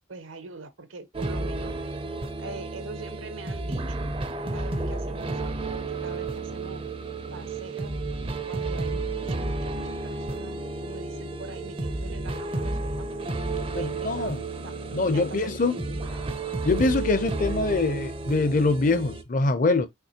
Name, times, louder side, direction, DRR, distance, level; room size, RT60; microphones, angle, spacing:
voice 1, 0.1-1.8 2.4-4.1 4.5-6.8 7.3-8.0 8.4-13.1 13.7-16.2, right 3 dB, 75° right, 0.8 m, -43 dB
sound 1, 1.1-19.2, right 3 dB, 25° right, 0.5 m, -32 dB
voice 2, 13.7-14.4 14.9-15.8 16.6-19.9, left 3 dB, 40° left, 0.5 m, -24 dB
5.8 x 3.1 x 2.8 m
head